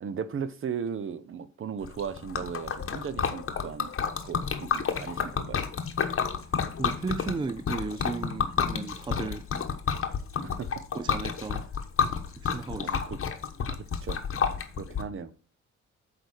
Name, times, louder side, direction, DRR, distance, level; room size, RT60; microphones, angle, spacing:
voice 1, 0.0-3.9 4.2-5.6 10.4-10.7 11.1-11.2 12.8-13.2 13.7-13.8 14.0-14.2 14.5-15.3, right 7 dB, 45° right, 0.8 m, -36 dB
Liquid, 1.8-15.0, left 6 dB, 45° left, 1.2 m, -30 dB
voice 2, 6.8-9.5 9.9-10.1 10.9-11.7 12.4-13.0, right 4 dB, 15° right, 0.4 m, -35 dB
8.6 x 3.5 x 6.3 m
cardioid pair, 90°, 30 cm